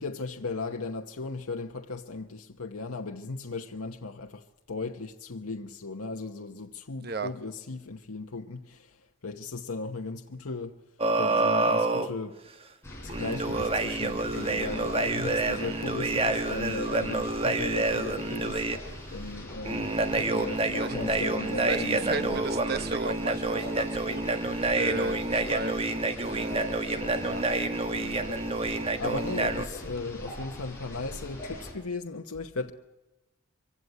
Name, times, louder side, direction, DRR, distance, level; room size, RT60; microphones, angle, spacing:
voice 1, 0.0-10.8 11.1-12.4 13.0-18.6 19.1-22.4 24.9-25.2 27.9-28.2 29.0-32.7, left 3 dB, 90° left, 1.0 m, -37 dB
sound 1, 11.0-12.1 13.1-18.8 19.6-29.6, right 2 dB, 25° right, 1.2 m, -28 dB
sound 2, 12.8-31.7, left 1 dB, 10° left, 5.0 m, -41 dB
voice 2, 21.6-24.2 24.7-26.7 27.2-27.4 28.2-28.3, right 3 dB, 45° right, 1.0 m, -35 dB
24.0 x 16.5 x 9.4 m
head